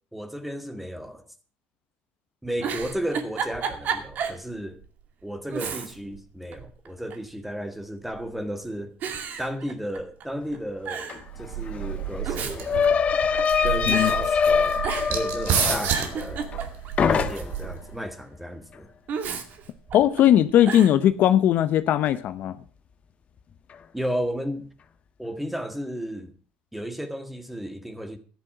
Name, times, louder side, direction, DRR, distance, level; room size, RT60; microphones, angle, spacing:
voice 1, 0.1-1.3 2.4-4.8 5.2-8.9 9.4-11.1 11.4-12.9 13.6-14.8 15.1-16.4 17.0-18.9 23.9-24.7 25.2-26.3 26.7-28.2, equal, 5° right, 1.8 m, -33 dB
Giggle, 2.4-4.4 4.8-4.9 5.5-6.2 6.5-7.3 8.1-8.5 9.0-10.2 10.5-10.6 10.8-11.2 12.0-13.6 13.9-14.2 14.8-15.3 15.6-17.0 19.1-20.2 20.6-21.0, right 6 dB, 50° right, 2.3 m, -32 dB
sound 1, 11.1-11.2 11.4-16.7 17.0-17.7, left 6 dB, 35° left, 1.3 m, -24 dB
sound 2, 11.3-18.0, right 9 dB, 65° right, 3.2 m, -31 dB
voice 2, 19.9-22.6, left 11 dB, 55° left, 0.9 m, -19 dB
13.5 x 10.5 x 6.1 m
cardioid pair, 125°, 4 cm